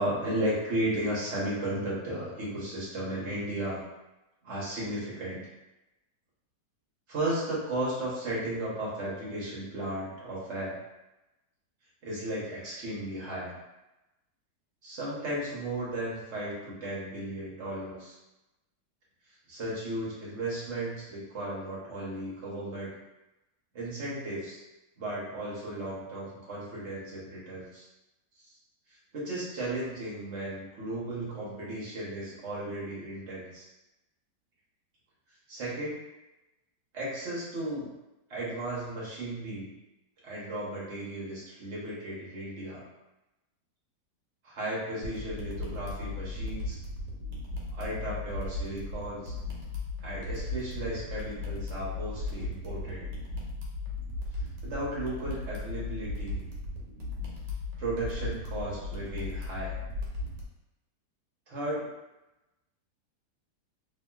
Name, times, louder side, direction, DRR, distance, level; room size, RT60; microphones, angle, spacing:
voice 1, 0.0-3.8 4.4-5.4 7.1-10.8 12.0-13.5 14.8-18.1 19.5-22.9 23.7-24.6 25.0-27.8 29.1-33.7 35.5-36.0 36.9-37.9 38.3-39.7 40.2-42.8 44.4-46.8 47.7-49.3 50.0-53.0 54.6-56.4 57.8-59.8 61.5-61.9, right 1 dB, 50° right, -7 dB, 1.0 m, -35 dB
sound 1, 45.0-60.4, left 2 dB, 85° right, 1.4 m, -36 dB
2.8 x 2.7 x 2.3 m, 0.98 s
omnidirectional pair, 1.9 m